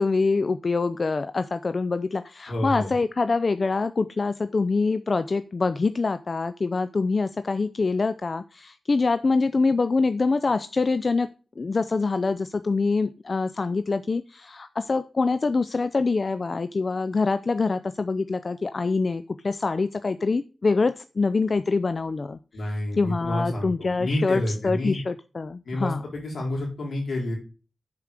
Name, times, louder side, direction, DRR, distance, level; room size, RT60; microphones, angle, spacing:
voice 1, 0.0-11.3 11.6-22.4 23.0-26.0, left 3 dB, 50° left, 12 dB, 0.4 m, -25 dB
voice 2, 2.5-2.9 22.5-25.0 25.6-27.4, left 1 dB, 75° left, -1 dB, 3.9 m, -29 dB
6.9 x 4.8 x 6.5 m, 0.36 s
cardioid pair, 55°, 0 cm